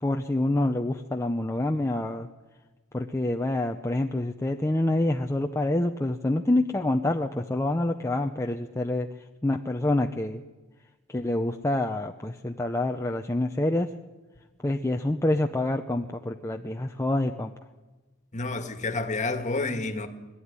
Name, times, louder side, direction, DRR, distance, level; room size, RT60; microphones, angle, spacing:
voice 1, 0.0-2.3 2.9-9.1 9.4-10.4 11.1-13.9 14.6-17.5, left 1 dB, 15° left, 0.6 m, -27 dB
voice 2, 18.3-20.1, left 3 dB, 35° left, 1.7 m, -29 dB
22.0 x 12.5 x 9.7 m
head